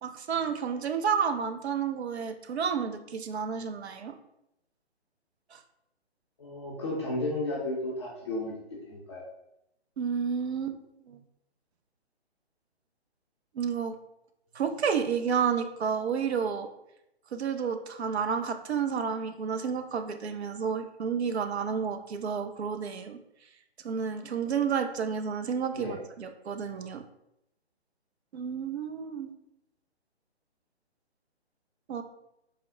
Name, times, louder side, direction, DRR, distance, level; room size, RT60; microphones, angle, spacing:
voice 1, 0.0-4.2 5.5-5.6 10.0-10.8 11.1-11.2 13.5-14.0 14.5-16.7 17.3-23.2 23.8-27.0 28.3-29.3 31.9-32.0, right 6 dB, 75° right, 7 dB, 0.5 m, -31 dB
voice 2, 6.4-8.6 8.9-9.2 25.7-26.0, left 2 dB, 25° left, -4 dB, 0.5 m, -33 dB
4.1 x 2.0 x 3.7 m, 0.83 s
figure-of-eight pair, 135°, 33 cm